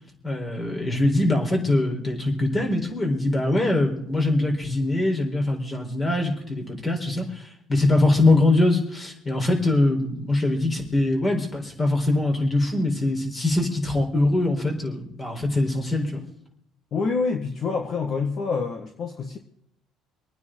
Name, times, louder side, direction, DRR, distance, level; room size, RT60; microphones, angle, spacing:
voice 1, 0.2-16.2, left 2 dB, 25° left, 3 dB, 4.1 m, -23 dB
voice 2, 16.9-19.4, left 4 dB, 50° left, 4 dB, 1.5 m, -27 dB
26.0 x 9.6 x 3.8 m, 0.74 s
cardioid pair, 115°, 0 cm